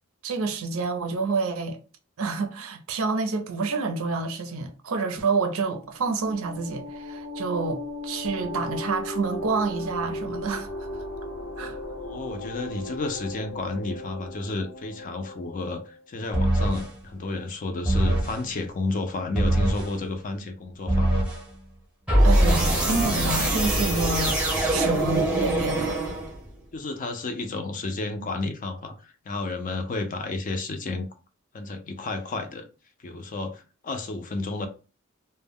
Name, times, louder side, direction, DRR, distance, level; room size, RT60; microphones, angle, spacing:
voice 1, 0.2-1.8 2.2-10.7 11.6-11.8 22.2-24.4 24.7-26.0, right 4 dB, 70° right, 0.5 m, -28 dB
sound 1, 5.8-16.0, left 1 dB, 85° left, 0.7 m, -37 dB
voice 2, 12.0-21.3 26.7-31.1 31.5-32.6 33.0-34.7, left 2 dB, 40° left, 0.4 m, -31 dB
sound 2, 16.3-16.9 17.9-18.4 19.4-19.9 20.9-21.4 22.1-26.5, right 1 dB, 5° right, 0.8 m, -23 dB
2.1 x 2.0 x 3.5 m
head